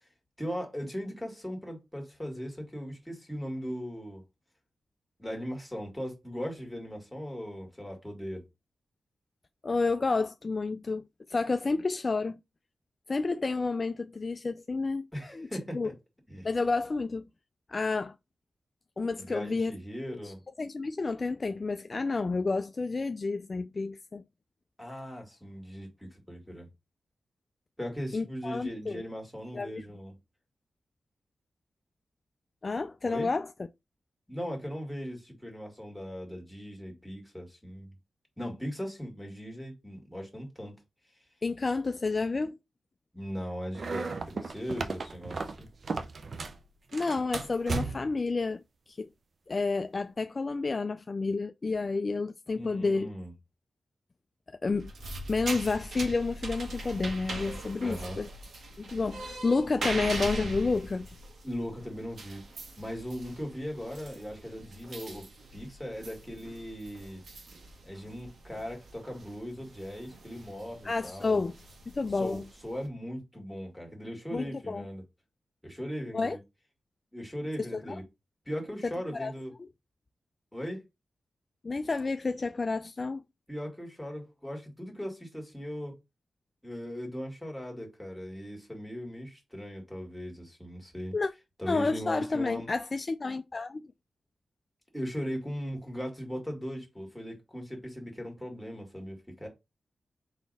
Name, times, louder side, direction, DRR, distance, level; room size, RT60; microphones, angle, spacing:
voice 1, 0.4-4.2 5.2-8.4 15.1-15.9 16.3-16.5 19.2-20.4 24.8-26.7 27.8-30.1 33.0-33.3 34.3-37.9 38.4-40.8 43.1-45.7 52.5-53.3 57.8-58.2 61.4-62.4 62.8-65.3 65.5-67.2 67.8-71.4 72.2-75.0 75.6-76.4 77.1-78.0 78.5-79.5 80.5-80.8 83.5-86.0 86.6-91.2 91.6-92.7 94.9-99.5, equal, 5° left, 2.0 m, -38 dB
voice 2, 9.6-12.4 13.1-15.1 15.3-15.5 15.7-15.9 16.4-17.3 17.7-18.1 19.0-19.7 20.1-24.2 28.1-29.0 29.5-29.9 32.6-33.5 41.4-42.6 46.9-48.6 48.9-49.1 49.5-53.1 54.6-54.9 55.3-58.3 58.8-61.1 70.8-71.5 71.9-72.5 74.3-74.8 76.1-76.4 77.6-78.0 78.8-79.3 81.6-83.2 91.1-91.3 91.7-93.9, left 3 dB, 40° left, 0.3 m, -30 dB
sound 1, 43.7-46.6 46.9-48.2, right 4 dB, 55° right, 0.6 m, -35 dB
sound 2, 54.7-72.9, right 2 dB, 75° right, 1.4 m, -41 dB
4.1 x 2.9 x 4.0 m
cardioid pair, 85°, 0 cm